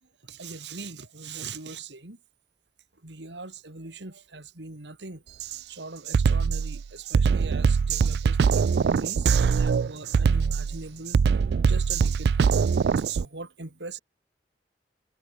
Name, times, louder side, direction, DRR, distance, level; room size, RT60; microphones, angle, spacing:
voice 1, 0.2-2.2 3.0-5.2 5.7-11.2 11.7-12.7 13.0-14.0, right 3 dB, 85° right, 2.6 m, -41 dB
Drum kit, 5.4-5.6 6.1-13.3, right 5 dB, 65° right, 0.3 m, -22 dB
head